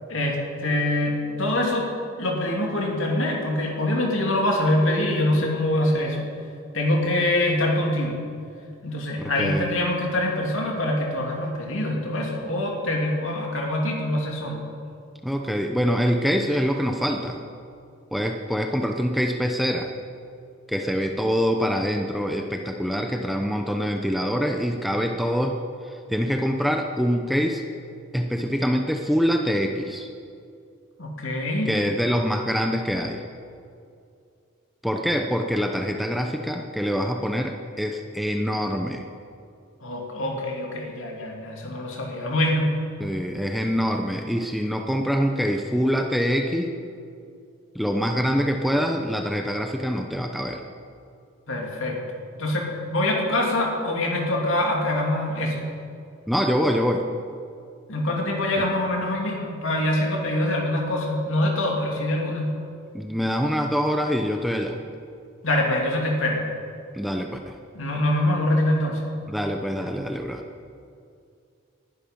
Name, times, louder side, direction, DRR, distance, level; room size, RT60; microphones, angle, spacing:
voice 1, 0.1-1.9 2.2-6.3 6.7-8.1 8.8-14.6 31.0-31.7 39.8-42.7 51.5-52.0 52.3-55.7 57.9-62.5 65.4-66.4 67.7-69.1, left 1 dB, 65° left, 0 dB, 3.0 m, -24 dB
voice 2, 9.2-9.7 15.2-17.4 18.1-19.9 20.7-25.6 25.8-27.6 28.1-30.1 31.7-33.2 34.8-39.0 43.0-46.7 47.7-50.6 56.3-57.1 58.6-58.7 62.9-64.8 66.9-67.5 69.3-70.4, equal, ahead, 3 dB, 0.7 m, -25 dB
20.0 x 11.5 x 5.4 m, 2.4 s
head